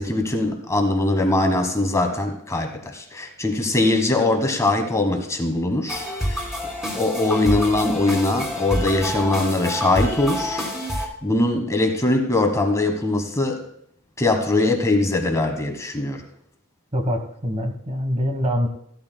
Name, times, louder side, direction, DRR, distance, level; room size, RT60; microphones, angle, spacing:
voice 1, 0.0-6.4 6.9-10.7 11.2-13.6 14.2-16.2, left 2 dB, 15° left, 5 dB, 1.3 m, -21 dB
sound 1, 5.9-11.1, left 1 dB, ahead, 2.9 m, -28 dB
voice 2, 16.9-18.7, equal, 30° right, 6 dB, 1.2 m, -24 dB
16.0 x 12.5 x 2.2 m, 0.71 s
head